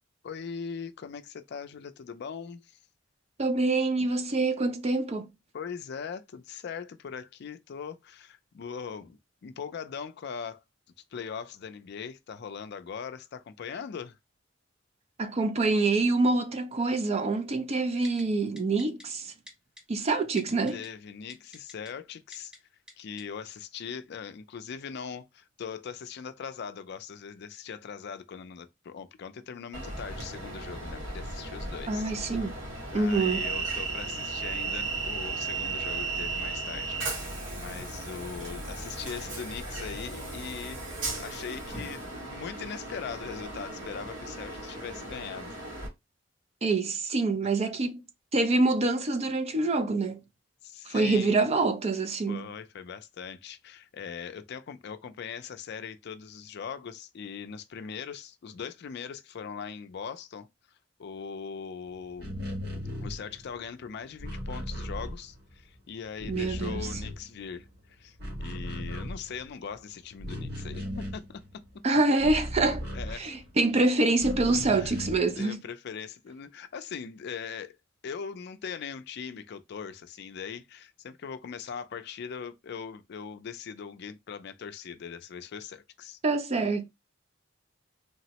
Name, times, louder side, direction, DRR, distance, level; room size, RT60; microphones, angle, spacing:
voice 1, 0.2-2.8 5.5-10.6 11.1-14.2 20.7-22.5 23.0-32.1 32.9-37.0 37.5-40.8 41.1-45.6 50.6-51.4 52.3-60.5 61.0-62.3 63.0-71.4 72.9-73.2 74.8-74.9 75.4-77.8 78.0-86.2, left 6 dB, 60° left, 0.4 m, -40 dB
voice 2, 3.4-5.3 15.2-19.3 19.9-20.8 31.9-32.5 32.9-33.4 46.6-48.0 48.3-50.2 50.9-52.5 66.3-66.9 71.8-72.9 73.1-75.6 86.2-86.9, right 3 dB, 35° right, 0.4 m, -26 dB
Typing, 18.0-18.2 18.6-19.0 19.5-19.8 20.4-20.9 21.3-21.9 22.3-22.6 22.9-23.0 23.2-23.3, left 1 dB, 5° right, 0.9 m, -48 dB
Train, 29.7-45.9, right 3 dB, 80° right, 1.3 m, -36 dB
sound 1, 62.1-65.8 66.0-67.8 68.0-73.7 74.2-75.4, equal, 55° right, 1.0 m, -37 dB
3.4 x 2.0 x 2.8 m
head